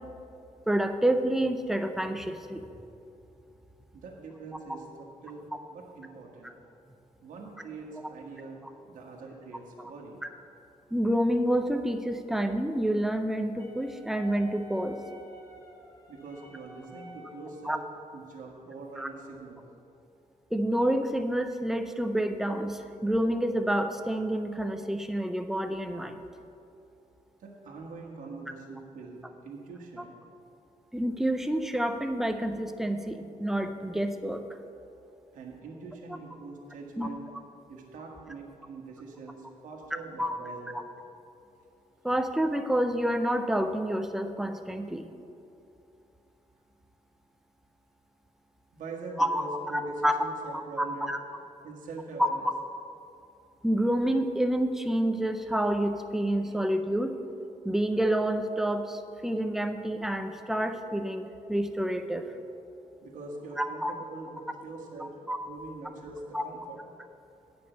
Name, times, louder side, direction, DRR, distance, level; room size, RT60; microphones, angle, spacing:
voice 1, 0.7-2.6 10.9-15.0 17.7-17.8 19.0-19.1 20.5-26.2 30.9-34.4 37.0-37.1 40.2-40.3 42.0-45.1 49.2-49.3 49.7-50.1 50.8-51.2 52.2-52.5 53.6-57.1 57.6-62.3 63.6-63.9 65.3-65.4 66.3-66.4, right 1 dB, 5° right, 7 dB, 0.5 m, -28 dB
voice 2, 3.9-6.5 7.2-10.2 16.1-17.8 18.1-19.6 27.4-30.2 35.3-37.2 37.7-40.7 48.7-51.1 51.6-52.5 56.4-56.6 63.0-65.1 65.4-66.8, right 3 dB, 75° right, -1 dB, 1.4 m, -43 dB
Wind instrument woodwind instrument, 13.6-17.8, left 1 dB, 25° left, 1.5 m, -50 dB
9.0 x 5.2 x 7.8 m, 2.7 s
cardioid pair, 140°, 13 cm